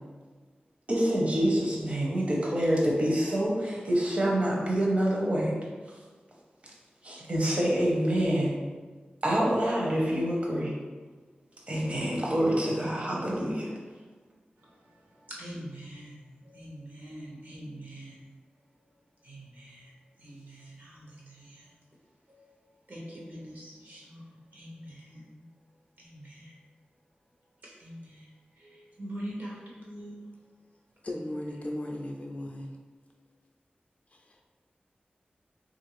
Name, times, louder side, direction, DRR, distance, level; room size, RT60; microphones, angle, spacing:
voice 1, 0.9-5.5 7.0-8.6 9.2-10.7 11.7-13.7, right 1 dB, 40° right, -3 dB, 0.7 m, -26 dB
voice 2, 14.6-18.3 19.2-19.9 20.2-21.7 22.3-22.5 22.9-25.4 26.0-26.5 27.6-28.3 28.5-30.2, right 1 dB, 65° right, -5 dB, 0.9 m, -44 dB
voice 3, 31.0-32.8 34.1-34.4, left 1 dB, 40° left, 1 dB, 0.4 m, -37 dB
3.1 x 2.5 x 3.1 m, 1.4 s
wide cardioid pair, 90°, 3 cm